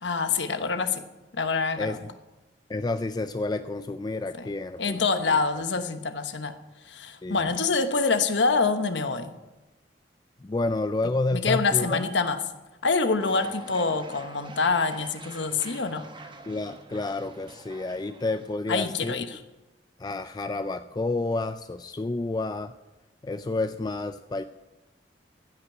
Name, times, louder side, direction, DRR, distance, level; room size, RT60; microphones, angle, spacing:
voice 1, 0.0-1.0 1.3-2.0 4.4-4.5 4.8-6.6 6.9-9.3 11.3-12.4 12.8-16.1 18.7-19.4, left 4 dB, 90° left, 9 dB, 1.1 m, -26 dB
voice 2, 1.8-2.1 2.7-5.0 5.3-5.4 7.2-7.5 10.4-12.0 16.5-19.1 20.0-22.7 23.2-24.4, left 2 dB, 25° left, 10 dB, 0.3 m, -30 dB
sound 1, 13.2-18.5, right 2 dB, 25° right, 1.0 m, -45 dB
15.5 x 5.9 x 9.1 m, 1.1 s
head